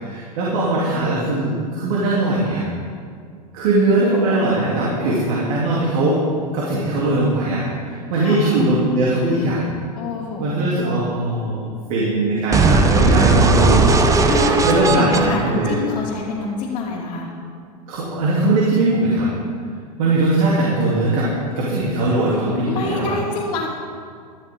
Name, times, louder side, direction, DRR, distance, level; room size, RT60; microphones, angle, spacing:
voice 1, 0.0-2.6 3.5-6.2 6.5-9.6 10.4-14.2 14.6-15.8 17.9-19.3 20.0-21.3 21.5-23.2, right 2 dB, 60° right, -6 dB, 3.2 m, -20 dB
voice 2, 9.9-11.0 14.2-17.3 22.6-23.7, left 4 dB, 40° left, -7 dB, 3.0 m, -26 dB
sound 1, 12.5-16.5, right 3 dB, 15° right, 0.9 m, -17 dB
14.5 x 12.5 x 3.8 m, 2.1 s
hypercardioid pair, 110°, 21 cm